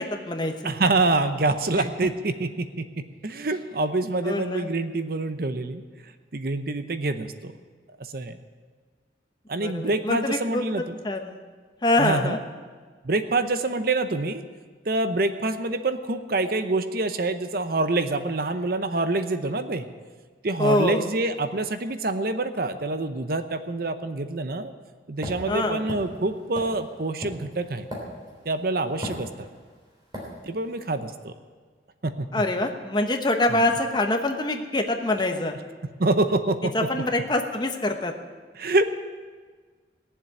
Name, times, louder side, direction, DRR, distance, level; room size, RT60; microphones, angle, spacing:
voice 1, 0.0-0.5 1.8-1.9 4.2-4.7 9.6-10.6 11.0-11.4 11.8-12.4 20.6-21.1 25.5-25.8 32.3-35.6 36.7-38.1, left 2 dB, 25° left, 4 dB, 1.1 m, -25 dB
voice 2, 0.6-2.8 3.2-5.8 6.3-7.5 8.0-8.4 9.5-11.0 12.0-12.4 13.0-14.4 14.9-19.8 20.4-24.7 25.1-27.9 28.4-29.5 30.4-31.3 32.0-32.3 33.5-33.6 36.0-36.7 38.6-38.9, right 2 dB, 55° right, 9 dB, 0.8 m, -26 dB
sound 1, 25.2-28.5 29.0-29.7 30.1-30.3, equal, 25° right, 3.5 m, -36 dB
18.0 x 7.5 x 9.5 m, 1.5 s
head